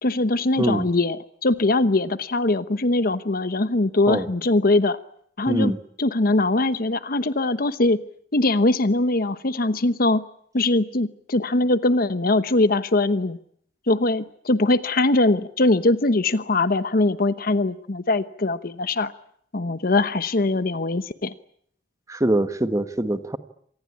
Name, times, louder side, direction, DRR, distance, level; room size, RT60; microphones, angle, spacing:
voice 1, 0.0-5.0 5.4-5.7 6.0-8.0 8.3-10.2 10.5-13.4 13.9-19.1 19.5-21.3, left 2 dB, 55° left, 13 dB, 1.0 m, -21 dB
voice 2, 5.5-5.8 22.1-23.4, right 1 dB, 20° right, 10 dB, 1.4 m, -23 dB
27.0 x 19.5 x 8.6 m, 0.66 s
head